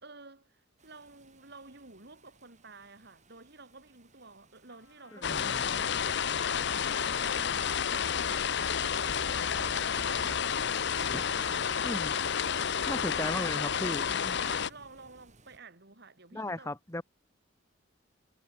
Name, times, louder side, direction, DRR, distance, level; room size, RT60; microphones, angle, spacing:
voice 1, 0.0-8.5 8.8-10.6 11.1-11.9 12.8-13.8 14.4-16.7, right 3 dB, 55° right, 3.4 m, -52 dB
sound 1, 0.8-15.6, right 2 dB, 35° right, 7.4 m, -60 dB
Trumpet, 4.7-13.6, left 5 dB, 75° left, 5.4 m, -55 dB
voice 2, 5.1-5.6 11.1-11.2 11.8-12.2 12.8-14.5 16.3-17.0, left 1 dB, 15° left, 1.2 m, -36 dB
sound 2, 5.2-14.7, left 7 dB, 60° left, 0.8 m, -30 dB
head